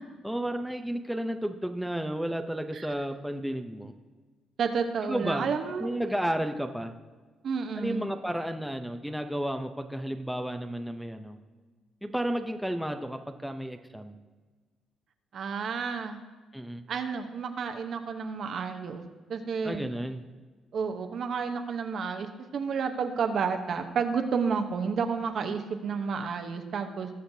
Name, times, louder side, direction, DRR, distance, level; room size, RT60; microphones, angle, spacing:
voice 1, 0.2-3.9 5.0-5.5 5.8-6.9 7.8-11.4 12.0-14.2 16.5-16.8 19.6-20.2, right 1 dB, ahead, 5 dB, 0.7 m, -32 dB
voice 2, 4.6-5.9 7.4-8.0 15.3-16.2 16.9-19.0 19.3-19.9 20.7-27.1, right 5 dB, 60° right, 6 dB, 1.0 m, -31 dB
19.0 x 6.5 x 2.8 m, 1.4 s
cardioid pair, 90°, 0 cm